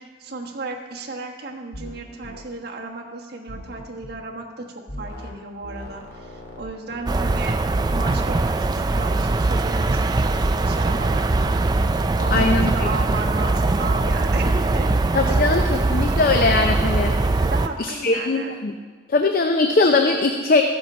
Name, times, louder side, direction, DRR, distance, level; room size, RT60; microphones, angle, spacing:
voice 1, 0.0-7.6 7.9-11.5 12.1-14.9 15.2-15.4 16.0-16.1 17.4-18.5, right 3 dB, 55° right, -1 dB, 1.2 m, -34 dB
sound 1, 1.7-2.0 2.2-2.4 3.5-4.2 4.9-5.3 5.6-8.1, left 1 dB, 70° left, 1.9 m, -39 dB
sound 2, 7.1-17.7, right 2 dB, 20° right, 0.3 m, -21 dB
voice 2, 12.3-12.9 15.1-17.4 17.8-18.7 19.1-20.6, left 3 dB, 50° left, 5 dB, 0.6 m, -20 dB
14.0 x 7.8 x 4.3 m, 1.5 s
head